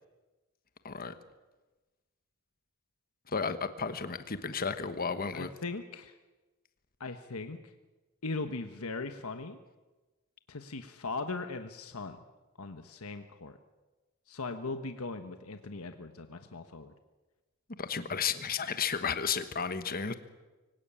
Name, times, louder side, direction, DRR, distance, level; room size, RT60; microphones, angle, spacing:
voice 1, 3.3-5.5 17.8-20.1, left 6 dB, 45° left, 10 dB, 1.2 m, -33 dB
voice 2, 5.3-6.1 7.0-7.7 8.2-9.6 10.5-12.2 12.6-13.6 14.3-16.9, left 3 dB, 75° left, 8 dB, 1.2 m, -39 dB
24.5 x 17.0 x 8.9 m, 1.2 s
head